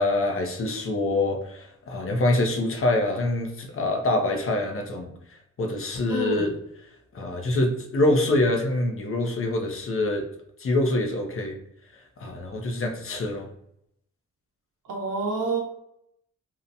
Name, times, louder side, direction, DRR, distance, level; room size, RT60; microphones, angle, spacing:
voice 1, 0.0-5.1 5.6-6.5 7.1-10.2 10.6-11.6 12.2-13.5, left 2 dB, 45° left, 3 dB, 0.6 m, -25 dB
voice 2, 6.1-6.5 14.9-15.6, right 3 dB, 80° right, 1 dB, 0.7 m, -27 dB
2.8 x 2.1 x 2.5 m, 0.75 s
cardioid pair, 80°, 31 cm